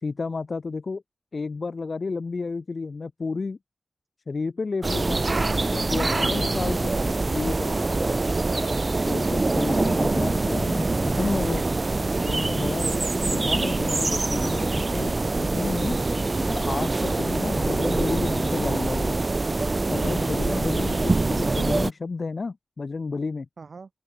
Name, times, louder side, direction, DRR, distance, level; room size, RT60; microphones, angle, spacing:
voice 1, 0.0-1.0 1.3-3.6 4.3-5.3 5.7-6.9 7.2-7.8 9.0-11.7 12.2-12.9 13.3-16.0 16.5-19.2 19.9-23.5, left 4 dB, 60° left, 0.9 m, -31 dB
sound 1, 4.8-21.9, right 3 dB, 40° right, 0.5 m, -24 dB
voice 2, 8.2-9.0 9.8-10.5 23.6-23.9, right 4 dB, 70° right, 4.6 m, -43 dB
open air
wide cardioid pair, 90°, 0 cm